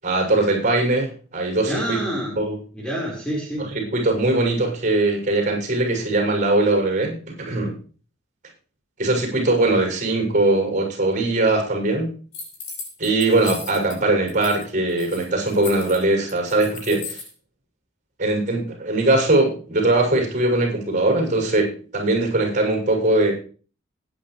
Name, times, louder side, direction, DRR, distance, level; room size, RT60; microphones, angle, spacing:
voice 1, 0.0-2.0 2.4-2.6 3.6-7.7 9.0-12.1 13.0-17.2 18.2-23.3, right 2 dB, 40° right, 1 dB, 7.2 m, -21 dB
voice 2, 1.7-2.4 2.7-3.7, equal, 5° left, -3 dB, 4.9 m, -27 dB
sound 1, 12.3-14.0 14.3-14.6 14.9-17.3, left 4 dB, 85° left, 5.7 m, -36 dB
20.0 x 10.5 x 3.4 m, 0.40 s
head